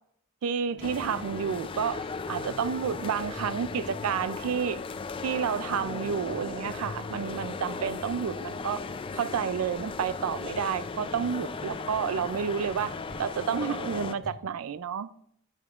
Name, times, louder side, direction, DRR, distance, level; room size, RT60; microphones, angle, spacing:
voice 1, 0.4-4.8 5.2-8.8 9.1-15.1, right 7 dB, 85° right, 0.4 m, -30 dB
sound 1, 0.7-10.1 10.8-14.3, left 1 dB, ahead, 1.7 m, -48 dB
sound 2, 0.8-14.1, left 4 dB, 25° left, 0.3 m, -37 dB
13.0 x 5.7 x 2.4 m
head